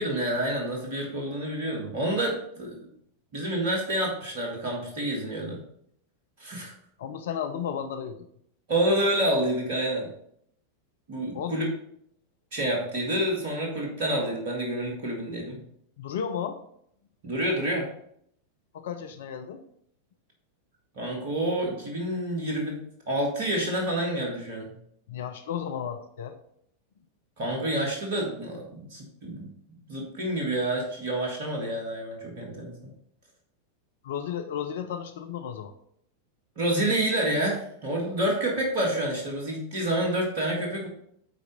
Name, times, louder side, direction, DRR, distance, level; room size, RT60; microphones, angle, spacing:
voice 1, 0.0-2.8 3.3-5.6 6.4-6.7 8.7-10.1 11.1-11.7 12.5-15.6 17.2-17.9 21.0-24.7 27.4-29.5 29.9-32.9 36.6-40.9, right 1 dB, 50° right, 0 dB, 1.8 m, -28 dB
voice 2, 7.0-8.3 11.3-11.6 16.0-16.6 18.7-19.6 25.1-26.4 34.0-35.7, left 8 dB, 60° left, 8 dB, 0.6 m, -33 dB
9.3 x 4.1 x 4.1 m, 0.69 s
figure-of-eight pair, 90°, 0 cm